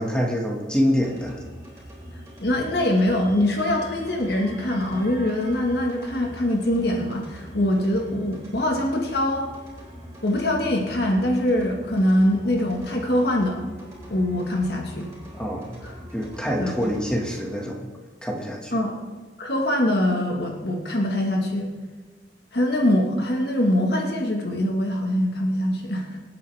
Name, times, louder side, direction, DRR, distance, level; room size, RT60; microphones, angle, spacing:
voice 1, 0.0-1.4 15.3-15.8 16.1-17.9 18.2-18.8, equal, 5° left, -1 dB, 1.8 m, -26 dB
sound 1, 1.0-17.7, equal, 15° right, 4.3 m, -42 dB
voice 2, 2.4-9.5 10.2-13.6 14.1-15.1 15.8-15.9 16.6-16.7 18.7-18.9 19.4-21.7 22.5-26.1, left 1 dB, 60° left, 1 dB, 1.7 m, -23 dB
25.5 x 8.8 x 3.5 m, 1.3 s
head